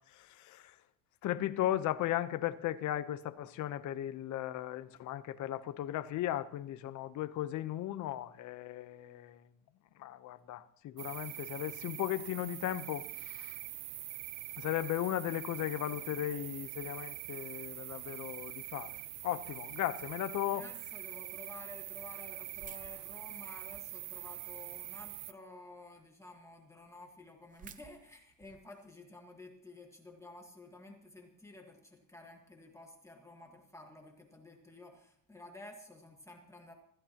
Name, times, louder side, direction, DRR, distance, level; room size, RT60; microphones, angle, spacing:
voice 1, 0.1-0.7 1.2-9.4 10.0-13.6 14.6-19.0 19.2-20.6, left 13 dB, 45° left, 0.9 m, -36 dB
sound 1, 11.0-25.3, right 17 dB, 75° right, 0.8 m, -44 dB
voice 2, 20.4-36.7, left 2 dB, 5° left, 1.6 m, -52 dB
sound 2, 22.5-24.1 24.6-25.3 25.8-25.9 26.1-26.2 26.5-26.6 26.8-28.8, right 7 dB, 20° right, 0.5 m, -55 dB
25.5 x 14.5 x 3.0 m
cardioid pair, 155°, 41 cm